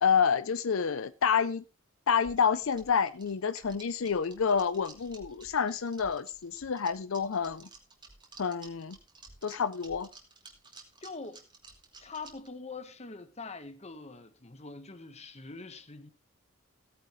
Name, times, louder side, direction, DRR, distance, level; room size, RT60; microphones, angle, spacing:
voice 1, 0.0-1.6 2.1-7.7 8.4-9.0 9.4-10.1, left 6 dB, 75° left, 0.5 m, -28 dB
sound 1, 2.2-12.5, right 3 dB, 20° right, 2.7 m, -53 dB
voice 2, 11.0-11.4 12.0-16.1, left 3 dB, 30° left, 1.3 m, -44 dB
16.5 x 9.5 x 3.2 m
head